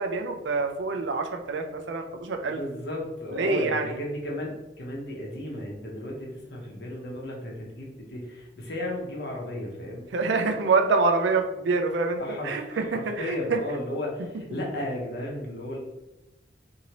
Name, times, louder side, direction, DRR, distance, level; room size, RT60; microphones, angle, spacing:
voice 1, 0.0-2.6 3.3-4.0 10.1-13.6, right 4 dB, 80° right, 4 dB, 0.4 m, -26 dB
voice 2, 2.4-10.1 12.2-12.6 12.9-15.8, left 1 dB, 60° left, -2 dB, 0.8 m, -34 dB
2.8 x 2.7 x 2.9 m, 1.0 s
head